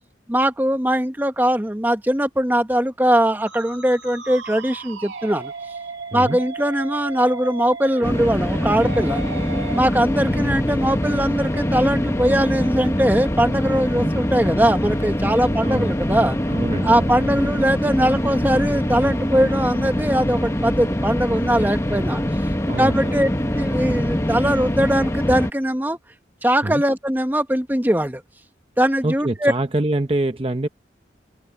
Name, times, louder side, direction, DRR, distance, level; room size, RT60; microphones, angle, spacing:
voice 1, 0.3-5.5 6.1-9.2 9.7-16.4 16.8-22.2 22.8-23.3 23.5-26.0 26.4-28.2 28.8-29.5, equal, 10° right, 1.1 m, -20 dB
Musical instrument, 3.5-9.8, right 4 dB, 85° right, 2.5 m, -35 dB
sound 1, 8.0-25.5, equal, 15° left, 1.2 m, -23 dB
voice 2, 15.6-15.9 16.5-17.5 22.7-23.2 26.6-26.8 29.0-30.7, right 1 dB, 30° right, 0.8 m, -25 dB
sound 2, 16.7-20.3, right 1 dB, 70° right, 7.6 m, -47 dB
head